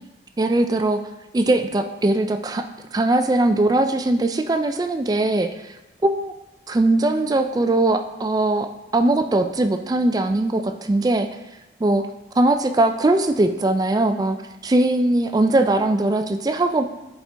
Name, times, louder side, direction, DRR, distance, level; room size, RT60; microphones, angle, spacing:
voice 1, 0.4-1.0 1.3-5.7 6.0-6.3 6.7-11.3 11.8-12.1 12.4-14.4 14.6-16.8, right 2 dB, 20° right, 7 dB, 0.3 m, -20 dB
8.2 x 4.4 x 3.4 m, 1.0 s
head